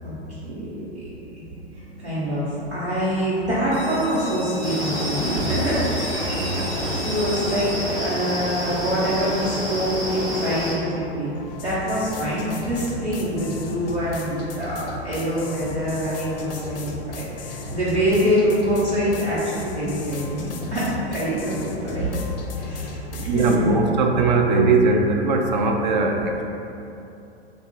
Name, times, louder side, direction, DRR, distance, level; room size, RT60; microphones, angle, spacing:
voice 1, 0.4-0.9 2.0-6.3 6.7-11.3 11.6-22.1 22.6-23.6, equal, 90° right, -12 dB, 1.1 m, -25 dB
sound 1, 3.7-9.1, left 3 dB, 30° left, 0.9 m, -41 dB
sound 2, 4.3-23.6, left 3 dB, 60° left, 0.5 m, -37 dB
sound 3, 4.6-10.7, equal, 10° right, 1.1 m, -28 dB
voice 2, 6.4-6.7 23.3-26.4, right 3 dB, 45° right, 2 dB, 0.4 m, -20 dB
3.4 x 2.3 x 3.9 m, 2.8 s
figure-of-eight pair, 105°, 32 cm